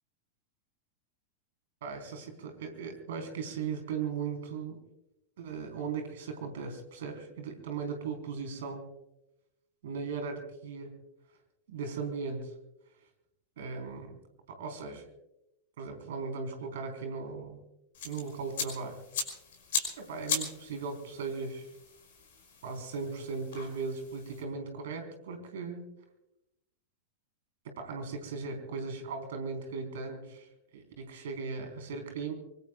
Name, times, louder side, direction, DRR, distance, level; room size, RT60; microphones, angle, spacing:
voice 1, 1.8-4.8 5.4-8.9 9.8-10.9 11.7-12.5 13.6-14.2 14.5-15.0 15.8-17.6 18.0-19.0 20.0-21.7 22.6-25.9 27.6-30.5 30.7-32.3, right 5 dB, 60° right, 5 dB, 4.1 m, -38 dB
sound 1, 17.9-24.4, left 5 dB, 55° left, 5.2 m, -38 dB
24.5 x 24.5 x 2.4 m, 0.87 s
figure-of-eight pair, 90°, 0 cm